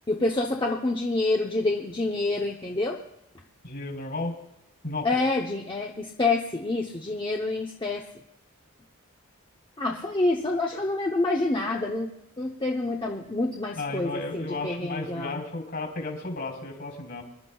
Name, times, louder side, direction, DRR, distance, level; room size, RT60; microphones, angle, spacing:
voice 1, 0.1-3.0 5.0-8.0 9.8-12.1 12.4-15.4, left 2 dB, 25° left, 0 dB, 0.8 m, -27 dB
voice 2, 3.6-4.3 4.8-5.2 13.8-17.2, left 2 dB, 55° left, 1 dB, 3.9 m, -33 dB
25.5 x 12.0 x 2.3 m, 0.77 s
head